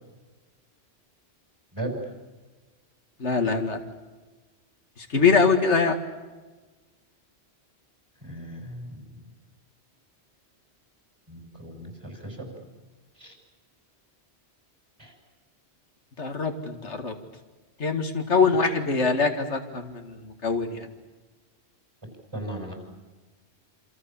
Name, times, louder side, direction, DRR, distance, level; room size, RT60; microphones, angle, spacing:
voice 1, 1.7-2.1 8.2-9.2 11.3-12.5 13.1-13.3 15.0-15.2 22.3-22.7, right 1 dB, 25° right, 3 dB, 6.2 m, -37 dB
voice 2, 3.2-3.8 5.1-6.0 16.2-17.1 17.8-20.9, left 4 dB, 85° left, 5 dB, 2.4 m, -23 dB
27.5 x 26.5 x 7.2 m, 1.3 s
omnidirectional pair, 1.1 m